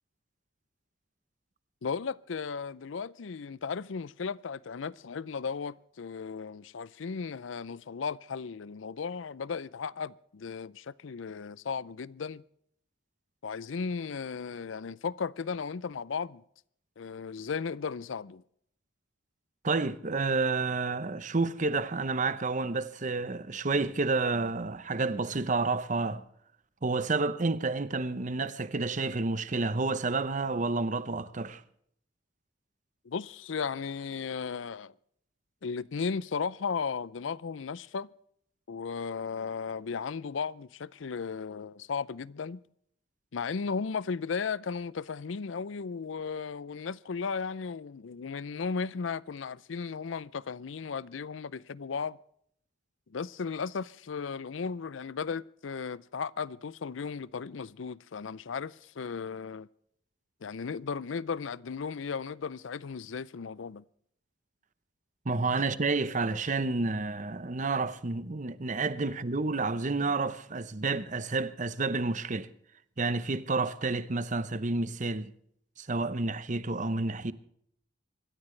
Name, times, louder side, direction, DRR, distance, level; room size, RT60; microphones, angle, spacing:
voice 1, 1.8-12.4 13.4-16.4 17.0-18.4 33.0-34.9 35.6-38.1 38.7-42.6 43.3-52.2 53.1-59.7 60.4-63.8, left 5 dB, 85° left, 0.5 m, -35 dB
voice 2, 19.6-26.2 26.8-31.6 65.2-72.5 73.0-75.3 75.8-77.3, right 3 dB, 40° right, 0.9 m, -30 dB
26.0 x 13.5 x 3.3 m
head